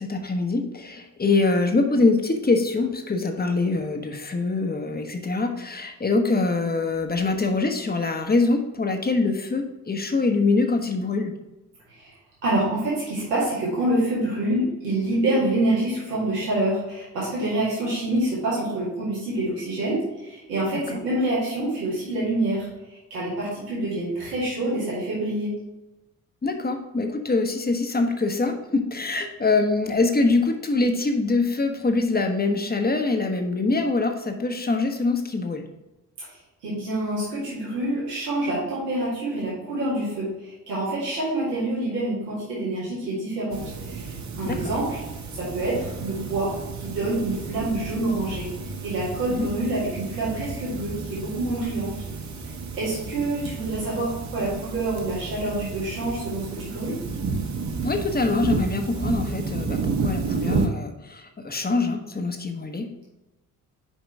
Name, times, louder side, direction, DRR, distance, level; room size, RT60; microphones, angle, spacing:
voice 1, 0.0-11.3 20.7-21.0 26.4-35.7 44.4-44.7 49.4-49.5 57.8-62.9, left 3 dB, 20° left, 5 dB, 1.0 m, -24 dB
voice 2, 12.4-22.7 23.1-25.5 36.2-45.0 45.3-46.5 46.8-48.5 48.8-51.9 52.7-57.0, right 1 dB, 85° right, -8 dB, 2.1 m, -27 dB
sound 1, 43.5-60.7, right 4 dB, 35° right, 1.1 m, -31 dB
5.5 x 4.9 x 4.8 m, 1.0 s
figure-of-eight pair, 40°, 47 cm